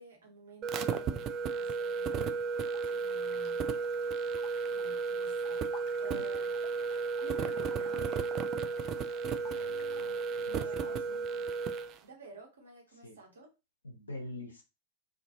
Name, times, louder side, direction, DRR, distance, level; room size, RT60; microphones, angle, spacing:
voice 1, 0.0-2.5 2.8-3.8 4.7-5.7 5.9-6.5 7.2-8.1 10.1-11.4 12.0-13.5, right 3 dB, 65° right, 0 dB, 1.1 m, -52 dB
sound 1, 0.6-11.9, right 5 dB, 35° right, 0.3 m, -33 dB
sound 2, 2.5-10.0, left 6 dB, 40° left, 0.6 m, -56 dB
voice 2, 9.3-11.2 13.0-13.2 13.8-14.6, left 1 dB, 75° left, 2 dB, 0.9 m, -46 dB
2.5 x 2.5 x 2.7 m, 0.27 s
figure-of-eight pair, 90°, 0 cm